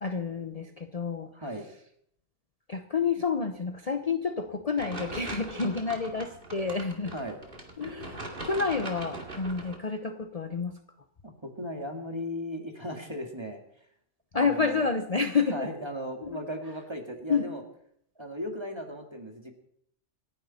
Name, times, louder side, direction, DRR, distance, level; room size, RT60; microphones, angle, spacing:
voice 1, 0.0-1.3 2.7-7.1 7.8-10.8 14.3-15.7 16.2-16.3 17.3-17.5, left 5 dB, 35° left, 7 dB, 0.8 m, -29 dB
voice 2, 1.3-1.6 7.1-7.4 11.2-13.6 14.3-14.9 15.5-17.6 18.2-19.5, equal, 20° right, 3 dB, 2.2 m, -37 dB
sound 1, 4.8-9.8, right 2 dB, 50° right, 2.4 m, -41 dB
27.0 x 10.5 x 4.3 m, 0.68 s
omnidirectional pair, 1.2 m